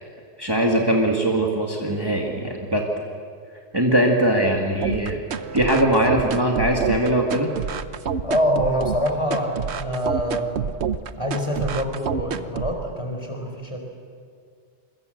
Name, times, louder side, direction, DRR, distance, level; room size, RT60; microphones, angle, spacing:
voice 1, 0.4-3.1 3.7-5.2 5.5-7.5, right 1 dB, 20° right, 0 dB, 2.1 m, -21 dB
sound 1, 4.8-12.8, right 7 dB, 65° right, 1.1 m, -28 dB
voice 2, 8.2-10.8 11.2-13.8, equal, 25° left, 2 dB, 4.6 m, -25 dB
27.0 x 23.5 x 7.9 m, 2.2 s
omnidirectional pair, 1.2 m